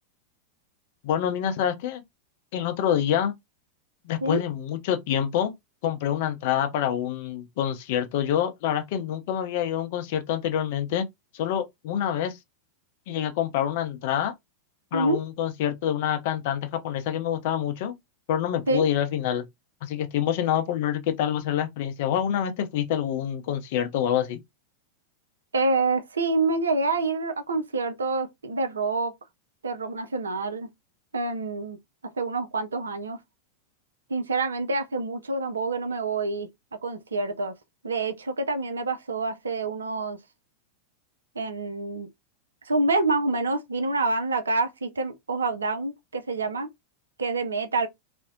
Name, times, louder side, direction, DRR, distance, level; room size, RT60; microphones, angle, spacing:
voice 1, 1.0-2.0 2.5-3.3 4.0-5.5 5.8-11.1 11.3-12.4 13.1-14.3 14.9-17.9 18.3-19.5 19.8-24.4, left 10 dB, 50° left, 0.5 m, -26 dB
voice 2, 25.5-29.1 29.6-30.7 31.1-31.8 32.1-33.2 34.1-36.5 36.8-37.5 37.8-40.2 41.4-42.1 42.6-46.7 47.2-47.9, right 3 dB, 70° right, 0.4 m, -27 dB
2.5 x 2.0 x 2.5 m
figure-of-eight pair, 90°, 0 cm